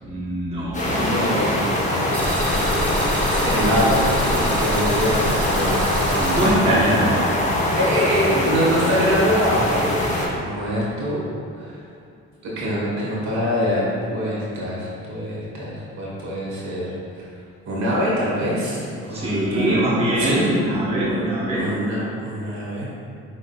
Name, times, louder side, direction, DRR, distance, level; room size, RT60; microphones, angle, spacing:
voice 1, 0.0-1.0 6.2-7.3 8.3-8.5 19.1-21.7, right 1 dB, 20° right, -8 dB, 1.0 m, -22 dB
voice 2, 0.5-6.9 7.8-11.2 11.6-11.8 12.4-17.3 17.6-19.9 20.2-20.5 21.1-21.2 21.5-22.8, equal, 65° right, -6 dB, 1.4 m, -25 dB
sound 1, 0.7-10.3, left 1 dB, 25° left, 0.8 m, -23 dB
sound 2, 2.1-6.5, equal, 5° left, 1.1 m, -26 dB
5.4 x 3.6 x 2.3 m, 2.4 s
cardioid pair, 90°, 30 cm